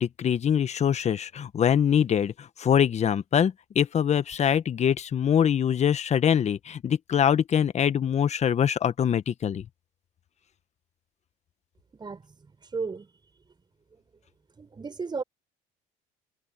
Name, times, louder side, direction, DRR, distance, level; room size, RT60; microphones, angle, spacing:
voice 1, 0.0-9.6, left 8 dB, 45° left, 1.3 m, -24 dB
voice 2, 12.7-13.1 14.6-15.2, right 4 dB, 25° right, 4.9 m, -33 dB
supercardioid pair, 85°, 17 cm